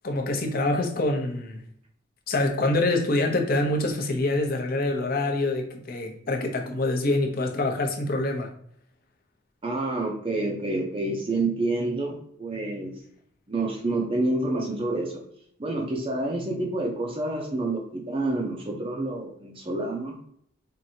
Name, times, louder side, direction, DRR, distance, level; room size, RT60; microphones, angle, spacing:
voice 1, 0.0-1.6 2.3-8.5, left 2 dB, 45° left, 3 dB, 0.6 m, -25 dB
voice 2, 9.6-13.0 13.5-15.2 15.6-20.2, right 2 dB, 25° right, 0 dB, 0.5 m, -28 dB
4.6 x 2.6 x 2.7 m, 0.67 s
head